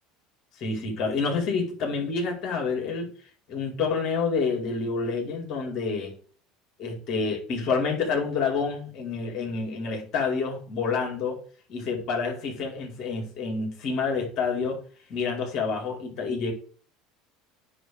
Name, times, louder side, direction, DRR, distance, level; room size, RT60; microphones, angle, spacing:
voice 1, 0.6-3.1 3.5-6.1 6.8-11.4 11.7-14.8 15.1-16.5, left 4 dB, 55° left, 4.5 m, -28 dB
9.9 x 4.1 x 6.4 m
supercardioid pair, 90°, 0 cm